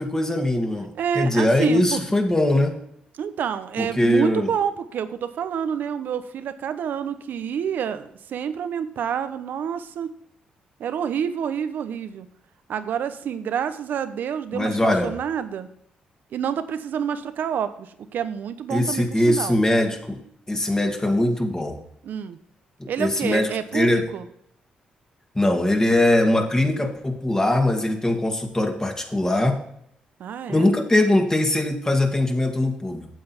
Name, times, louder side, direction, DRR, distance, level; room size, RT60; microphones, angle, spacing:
voice 1, 0.0-0.9 1.2-2.8 3.8-4.5 14.5-15.1 18.7-20.2 20.5-21.8 22.8-24.1 25.3-29.6 30.5-33.1, left 1 dB, 20° left, 4 dB, 2.2 m, -21 dB
voice 2, 0.9-2.0 3.1-10.1 10.8-12.3 12.7-15.7 16.3-19.6 22.0-22.4 22.9-24.3 30.2-30.7, right 8 dB, 70° right, 11 dB, 0.9 m, -28 dB
9.0 x 7.8 x 4.4 m, 0.71 s
supercardioid pair, 55°, 3 cm